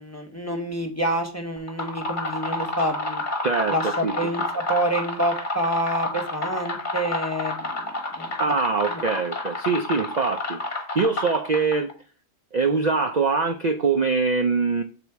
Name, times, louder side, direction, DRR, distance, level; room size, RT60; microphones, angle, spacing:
voice 1, 0.0-3.2 3.7-8.6 8.9-9.0, right 1 dB, 15° left, 0.9 m, -28 dB
sound 1, 1.6-11.9, left 2 dB, 40° left, 1.4 m, -30 dB
voice 2, 3.4-3.8 4.0-4.1 8.4-11.9 12.5-14.8, right 4 dB, 50° right, 0.6 m, -23 dB
7.0 x 4.1 x 4.6 m
omnidirectional pair, 1.2 m